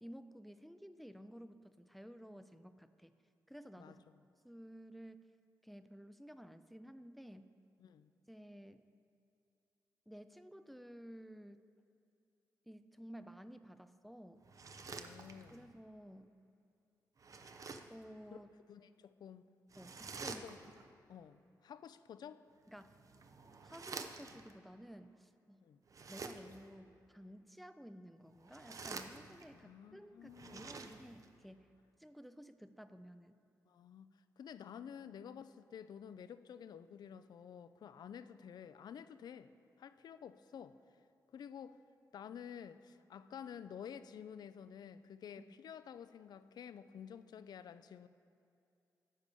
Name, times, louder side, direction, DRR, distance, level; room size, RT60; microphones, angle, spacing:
voice 1, 0.0-3.1 3.5-4.0 4.4-5.2 5.6-7.5 8.3-8.9 10.1-11.6 12.7-14.5 15.5-16.4 17.9-18.5 19.8-20.5 22.7-23.0 23.6-25.7 26.1-31.7 32.0-33.3 45.4-45.5, equal, ahead, 11 dB, 0.4 m, -54 dB
voice 2, 3.8-4.2 7.8-8.1 14.9-15.6 18.7-19.5 20.4-20.6 21.1-22.4 25.6-25.8 29.5-30.8 33.7-34.1 34.4-39.5 39.8-40.8 41.3-41.8 42.1-48.1, left 8 dB, 70° left, 13 dB, 0.4 m, -51 dB
sound 1, 14.4-15.7 17.2-18.0 19.7-20.9 22.7-24.5 25.9-26.7 28.3-29.6 30.2-31.3, right 4 dB, 50° right, 0.6 m, -49 dB
9.5 x 4.9 x 6.8 m, 2.7 s
cardioid pair, 60°, 7 cm